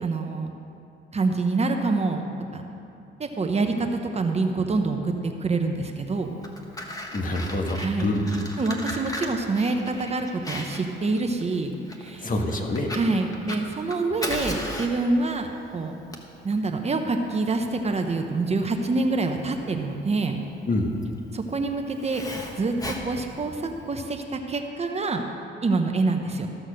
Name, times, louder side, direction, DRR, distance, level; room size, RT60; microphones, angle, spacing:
voice 1, 0.0-0.5 1.1-2.2 2.5-2.6 3.2-6.4 7.8-8.1 8.6-12.3 12.9-15.9 16.4-20.4 21.3-22.2 22.6-22.7 23.0-25.2 25.6-26.5, right 3 dB, 35° right, 4 dB, 0.9 m, -26 dB
Fire, 6.2-24.0, left 1 dB, 20° left, 1.4 m, -37 dB
voice 2, 7.1-8.2 12.2-12.9 20.7-21.0, left 1 dB, 45° left, 2 dB, 1.5 m, -26 dB
14.0 x 6.4 x 6.4 m, 2.7 s
cardioid pair, 90°, 20 cm